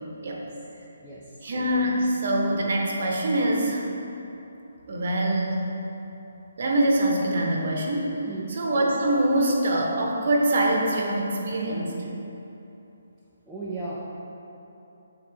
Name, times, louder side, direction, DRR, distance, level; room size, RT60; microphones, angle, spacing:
voice 1, 1.4-3.8 4.9-5.7 6.6-12.0, right 1 dB, 40° right, 0 dB, 0.8 m, -24 dB
voice 2, 13.5-14.0, right 3 dB, ahead, -11 dB, 0.4 m, -35 dB
8.4 x 3.8 x 3.8 m, 3.0 s
hypercardioid pair, 180°, 0 cm